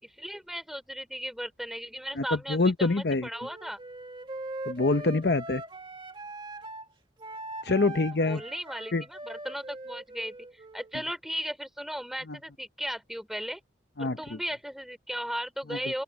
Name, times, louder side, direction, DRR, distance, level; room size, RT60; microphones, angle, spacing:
voice 1, 0.0-3.8 8.2-13.6 14.0-16.0, equal, ahead, 3.9 m, -36 dB
voice 2, 2.2-3.3 4.7-5.6 7.6-8.4 8.9-9.0 12.3-12.4 14.0-14.4 15.7-15.8, left 3 dB, 55° left, 0.8 m, -26 dB
Wind instrument woodwind instrument, 3.3-6.9 7.2-11.0, right 2 dB, 25° right, 2.0 m, -41 dB
open air
head